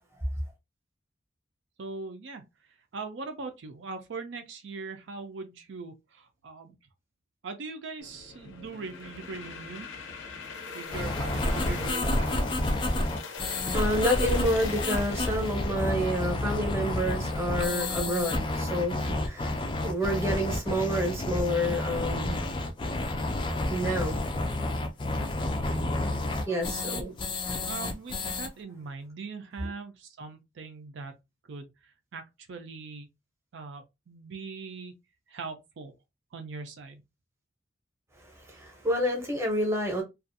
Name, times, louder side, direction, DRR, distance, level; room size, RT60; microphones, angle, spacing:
voice 1, 1.8-6.8 7.4-9.9 10.7-12.5 25.5-26.0 26.5-27.2 27.7-31.1 31.4-33.1 33.5-34.9 35.3-35.9 36.3-37.0, right 4 dB, 70° right, 0.4 m, -41 dB
sound 1, 8.0-17.8, left 5 dB, 85° left, 0.6 m, -42 dB
sound 2, 10.9-28.5, left 2 dB, 25° left, 0.3 m, -30 dB
voice 2, 13.4-22.5 23.7-24.2 26.5-27.1 29.6-29.7 38.2-40.0, equal, 15° right, 0.7 m, -29 dB
2.5 x 2.3 x 2.6 m
head